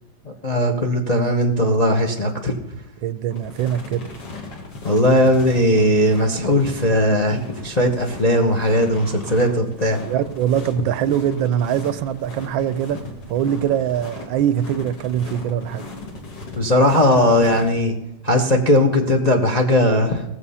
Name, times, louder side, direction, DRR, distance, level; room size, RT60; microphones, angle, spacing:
voice 1, 0.3-2.5 4.8-10.0 16.6-17.9 18.2-20.2, left 1 dB, 35° left, 0.7 m, -18 dB
voice 2, 3.0-4.1 10.1-13.0 13.3-15.9, right 10 dB, 75° right, 1.3 m, -22 dB
sound 1, 3.3-17.7, left 2 dB, 60° left, 2.7 m, -37 dB
17.5 x 7.3 x 5.5 m
omnidirectional pair, 2.2 m